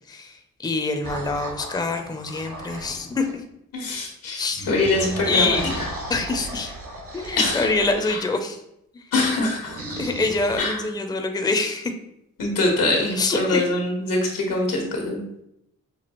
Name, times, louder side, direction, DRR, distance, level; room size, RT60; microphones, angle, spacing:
voice 1, 0.1-3.3 4.3-4.8 5.2-5.8 6.1-6.7 7.1-8.6 8.9-9.0 10.0-11.9 13.1-13.6, left 3 dB, 10° left, 5 dB, 0.5 m, -25 dB
sound 1, 1.0-3.4 4.5-8.1 9.6-10.6, right 1 dB, 65° right, 1.5 m, -35 dB
voice 2, 3.7-5.8 7.4-7.7 8.1-8.2 9.1-9.8 10.6-10.8 12.4-15.2, left 2 dB, 90° left, 1 dB, 1.2 m, -23 dB
6.0 x 2.3 x 3.0 m, 0.78 s
cardioid pair, 70°, 32 cm